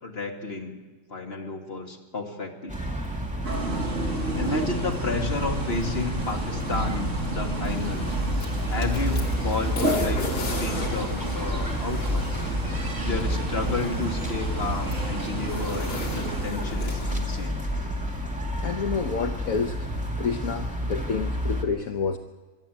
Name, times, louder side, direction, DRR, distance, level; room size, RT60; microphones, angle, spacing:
voice 1, 0.0-0.8 1.1-2.8 4.2-8.2 8.7-10.2 10.6-12.3 13.0-17.6, left 3 dB, 30° left, 1 dB, 2.2 m, -32 dB
sound 1, 2.7-21.6, equal, 5° right, 2.1 m, -30 dB
sound 2, 3.4-16.5, right 1 dB, 35° right, 3.0 m, -31 dB
sound 3, 7.7-17.5, left 3 dB, 85° left, 3.5 m, -38 dB
voice 2, 18.6-19.9 20.2-22.2, left 5 dB, 55° left, 5 dB, 1.1 m, -29 dB
24.5 x 12.0 x 9.1 m, 1.3 s
omnidirectional pair, 2.2 m